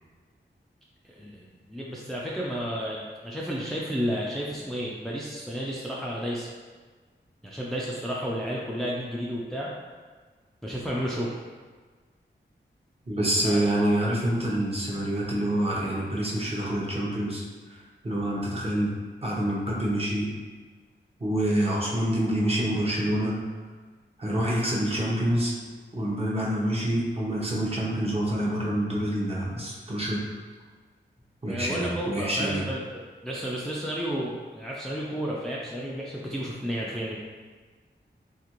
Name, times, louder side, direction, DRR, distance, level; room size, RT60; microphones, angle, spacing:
voice 1, 1.0-6.5 7.4-9.7 10.6-11.3 13.4-13.6 31.5-37.2, equal, ahead, -5 dB, 0.4 m, -32 dB
voice 2, 13.1-19.0 19.2-20.3 21.2-23.4 24.2-25.5 25.9-30.2 31.4-32.6, right 1 dB, 30° right, -5 dB, 0.8 m, -27 dB
2.9 x 2.5 x 2.9 m, 1.4 s
wide cardioid pair, 65°, 20 cm